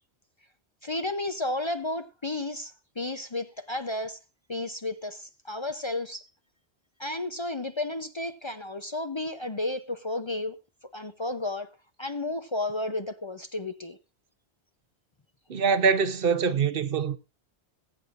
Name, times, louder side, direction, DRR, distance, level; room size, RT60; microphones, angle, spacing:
voice 1, 0.8-4.2 4.5-6.2 7.0-10.5 10.9-11.7 12.0-14.0, left 2 dB, 30° left, 0.7 m, -32 dB
voice 2, 15.5-17.2, right 5 dB, 60° right, 1.0 m, -24 dB
20.5 x 8.7 x 2.5 m
omnidirectional pair, 1.1 m